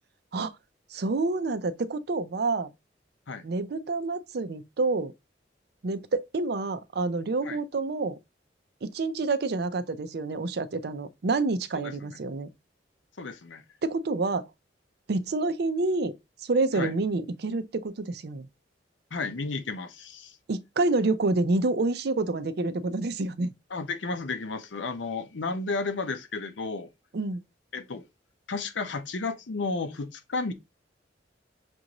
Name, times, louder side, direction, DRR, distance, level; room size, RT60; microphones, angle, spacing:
voice 1, 0.9-2.7 3.4-5.1 5.8-8.2 8.8-12.5 13.8-14.4 15.1-16.1 16.4-18.5 20.5-23.5 27.1-27.4, right 3 dB, 60° right, 0.5 m, -28 dB
voice 2, 11.7-12.2 13.2-13.6 16.7-16.9 19.1-20.4 23.7-26.9 27.7-28.1 28.5-30.5, left 3 dB, 90° left, 0.7 m, -33 dB
6.1 x 2.6 x 2.9 m
head